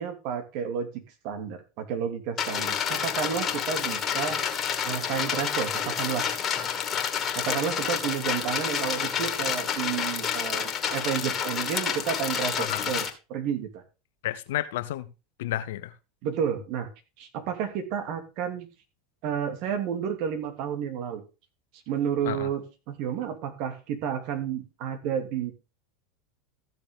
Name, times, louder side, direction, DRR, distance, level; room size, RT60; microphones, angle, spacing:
voice 1, 0.0-4.4 4.8-6.3 7.3-13.0 13.3-13.8 16.2-16.9 17.2-18.7 19.2-21.2 21.9-25.5, right 8 dB, 60° right, 2.8 m, -31 dB
sound 1, 2.4-13.1, left 8 dB, 30° left, 2.5 m, -29 dB
voice 2, 12.6-12.9 14.2-15.1 15.4-15.9 22.2-22.5, left 14 dB, 70° left, 0.9 m, -31 dB
15.0 x 6.7 x 3.7 m
hypercardioid pair, 90°, 0 cm